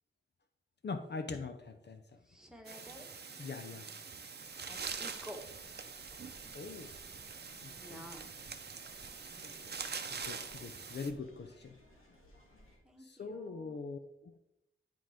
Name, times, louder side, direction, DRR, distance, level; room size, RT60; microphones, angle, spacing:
voice 1, 0.8-2.0 3.4-3.9 6.5-6.9 7.6-8.1 9.4-9.5 10.1-11.8 13.0-14.3, left 4 dB, 55° left, 7 dB, 0.6 m, -42 dB
voice 2, 2.3-3.1 4.6-5.4 7.8-8.3 10.1-10.2 12.8-13.8, equal, 5° right, 2 dB, 1.3 m, -51 dB
sound 1, 2.6-11.1, right 5 dB, 50° right, 0.7 m, -44 dB
sound 2, 4.4-12.8, left 1 dB, 80° left, 2.0 m, -61 dB
11.0 x 3.7 x 3.6 m, 0.84 s
wide cardioid pair, 80°, 21 cm